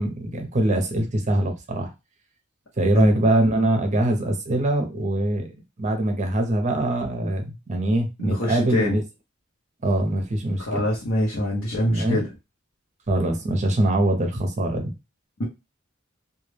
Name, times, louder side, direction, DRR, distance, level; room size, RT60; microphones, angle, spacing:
voice 1, 0.0-1.9 2.8-9.0 9.8-10.8 11.8-12.2 13.1-14.9, right 1 dB, 35° right, 4 dB, 0.6 m, -23 dB
voice 2, 8.2-9.0 10.6-12.3, left 1 dB, 70° left, -4 dB, 0.7 m, -24 dB
2.2 x 2.1 x 3.1 m, 0.25 s
head